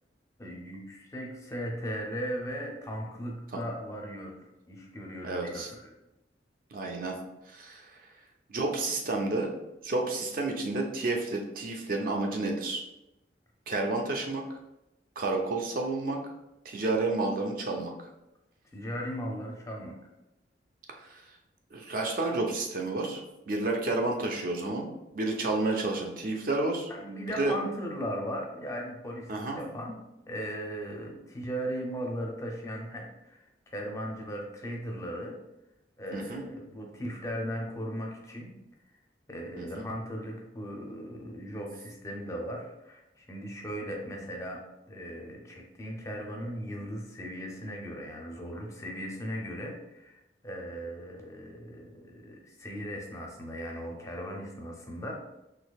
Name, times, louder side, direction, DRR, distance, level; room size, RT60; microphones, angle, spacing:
voice 1, 0.4-6.0 18.7-20.0 26.9-30.0 30.3-35.4 36.0-38.5 39.3-44.6 44.9-55.1, equal, 15° left, 0 dB, 0.5 m, -37 dB
voice 2, 5.2-5.7 6.7-7.1 7.5-7.8 8.5-9.5 9.8-12.8 13.7-14.4 15.2-16.2 16.6-17.9 21.0-21.2 21.7-23.2 23.5-24.9 25.1-26.9 27.4-27.5 29.3-29.6 36.1-36.4 39.6-39.8, right 2 dB, 50° right, 1 dB, 0.5 m, -30 dB
3.9 x 2.7 x 2.3 m, 0.92 s
head